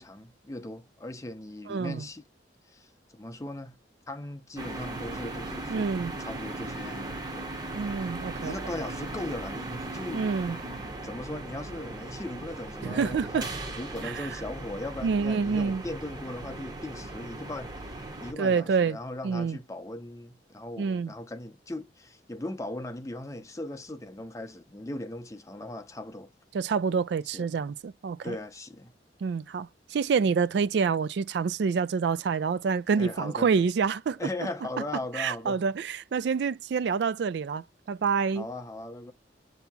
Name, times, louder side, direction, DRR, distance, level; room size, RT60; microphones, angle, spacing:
voice 1, 0.0-2.2 2.7-3.8 4.1-5.9 6.2-7.5 8.4-10.3 11.0-26.3 27.3-27.5 28.2-28.9 33.0-33.5 34.2-35.6 38.4-39.1, left 1 dB, 15° left, 0.6 m, -38 dB
voice 2, 1.7-2.1 5.7-6.1 7.7-8.5 10.1-10.6 12.8-13.5 14.0-14.3 15.0-15.8 18.4-19.0 19.2-19.6 20.8-21.1 26.5-28.3 29.2-34.2 35.1-38.5, right 5 dB, 65° right, 0.3 m, -27 dB
sound 1, 4.6-18.3, right 2 dB, 20° right, 0.8 m, -38 dB
7.9 x 2.8 x 2.3 m
head